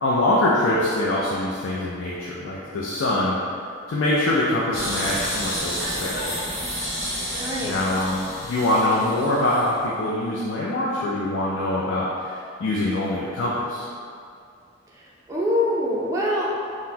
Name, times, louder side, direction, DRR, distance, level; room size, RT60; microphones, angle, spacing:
voice 1, 0.0-3.4 3.9-6.4 7.6-13.9, left 1 dB, 70° left, -6 dB, 0.4 m, -24 dB
sound 1, 4.7-9.8, equal, 50° left, 1.3 m, -30 dB
voice 2, 7.3-7.7 15.0-16.6, left 1 dB, 15° right, -5 dB, 0.3 m, -25 dB
3.9 x 2.0 x 2.7 m, 2.3 s
head